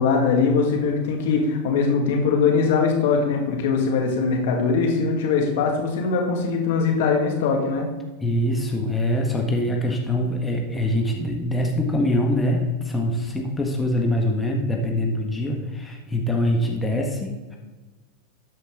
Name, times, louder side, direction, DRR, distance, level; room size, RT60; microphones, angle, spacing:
voice 1, 0.0-7.9, left 5 dB, 70° left, 1 dB, 2.2 m, -21 dB
voice 2, 8.2-17.6, left 1 dB, 15° left, 1 dB, 1.5 m, -24 dB
13.0 x 5.3 x 3.9 m, 1.2 s
hypercardioid pair, 105°, 0 cm